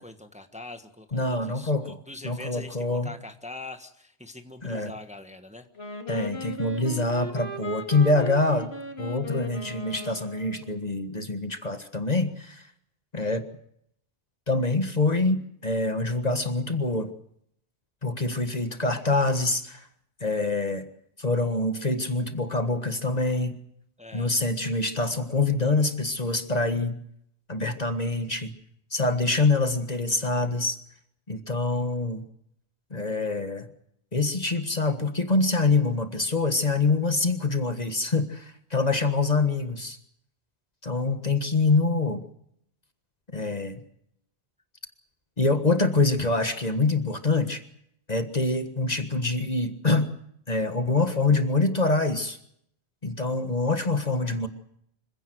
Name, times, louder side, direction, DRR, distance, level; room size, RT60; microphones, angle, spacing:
voice 1, 0.0-5.7 24.0-24.3, left 2 dB, 5° right, 7 dB, 1.4 m, -43 dB
voice 2, 1.1-2.0 2.2-3.1 4.6-4.9 6.1-12.7 13.1-13.4 14.5-17.1 18.0-19.9 20.2-20.9 21.2-23.6 24.1-27.0 27.5-28.6 28.9-30.8 31.3-32.3 32.9-33.7 34.1-40.0 40.8-42.2 43.3-43.8 45.4-47.6 48.1-50.1 50.5-52.4 53.0-54.5, left 3 dB, 40° left, 8 dB, 1.6 m, -25 dB
Wind instrument woodwind instrument, 5.8-10.8, left 2 dB, 70° left, 3.2 m, -37 dB
25.5 x 16.5 x 7.9 m, 0.72 s
omnidirectional pair, 1.1 m